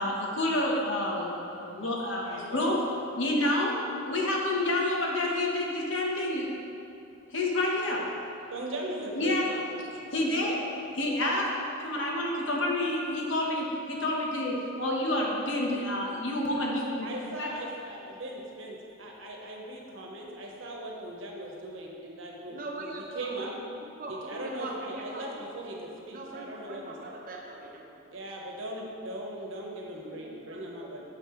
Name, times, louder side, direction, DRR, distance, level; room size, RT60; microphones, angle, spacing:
voice 1, 0.0-2.8 3.2-3.7 4.1-6.5 7.3-8.0 9.2-9.4 10.1-10.6 11.0-11.5 11.8-17.1 17.4-17.5, left 1 dB, 65° left, -2 dB, 1.1 m, -28 dB
voice 2, 2.2-2.7 8.5-9.8 10.1-10.6 17.0-23.5 24.1-27.1 28.1-31.0, right 1 dB, 70° right, -1 dB, 1.1 m, -39 dB
voice 3, 22.5-25.2 26.1-28.0 30.1-31.0, right 2 dB, 45° right, 0 dB, 0.8 m, -42 dB
8.5 x 6.6 x 3.2 m, 2.8 s
head